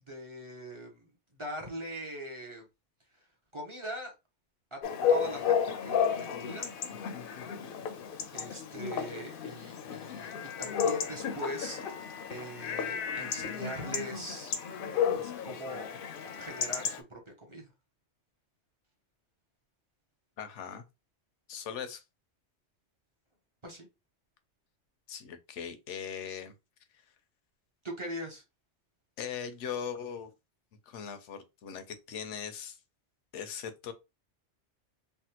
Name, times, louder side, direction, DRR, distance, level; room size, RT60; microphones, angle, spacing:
voice 1, 0.1-1.0 1.4-2.6 3.5-4.1 4.7-4.8 5.1-6.7 8.3-11.8 12.1-14.5 15.1-15.9 16.4-17.6 23.6-23.9 27.8-28.4, right 1 dB, 30° right, 0.7 m, -41 dB
Chatter / Bark / Livestock farm animals working animals, 4.8-17.0, left 7 dB, 60° left, 0.6 m, -33 dB
voice 2, 20.4-20.8 21.5-22.0 25.1-26.5 29.2-30.3 30.9-32.8 33.3-33.9, left 7 dB, 85° left, 0.9 m, -39 dB
3.4 x 2.2 x 2.8 m
omnidirectional pair, 1.2 m